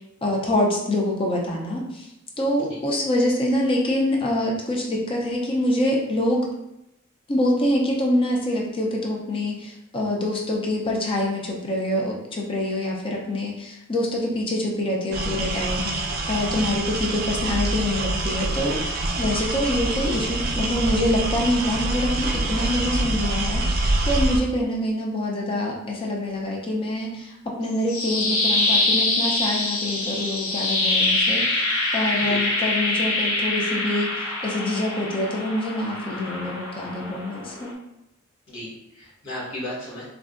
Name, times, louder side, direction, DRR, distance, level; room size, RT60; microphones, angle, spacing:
voice 1, 0.2-2.1 2.4-6.5 7.3-31.6 31.9-37.7, left 1 dB, 25° left, -1 dB, 0.5 m, -25 dB
sound 1, 15.1-24.4, right 2 dB, 45° right, 0.4 m, -25 dB
sound 2, 27.6-37.7, left 2 dB, 90° left, 0.6 m, -25 dB
voice 2, 38.5-40.0, left 1 dB, 70° left, -7 dB, 1.3 m, -35 dB
3.4 x 2.1 x 2.4 m, 0.87 s
head